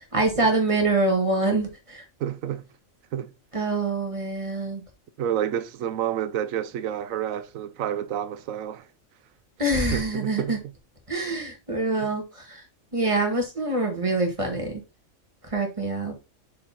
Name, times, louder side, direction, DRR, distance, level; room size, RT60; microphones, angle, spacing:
voice 1, 0.1-2.0 3.5-4.8 9.6-10.6 11.1-12.6 12.9-14.7 15.5-16.1, right 2 dB, 25° right, 1.7 m, -25 dB
voice 2, 2.2-2.6 3.1-3.3 5.2-8.9 9.9-10.6 12.0-12.1, right 10 dB, 80° right, 1.0 m, -29 dB
6.3 x 4.3 x 4.2 m
omnidirectional pair, 1.4 m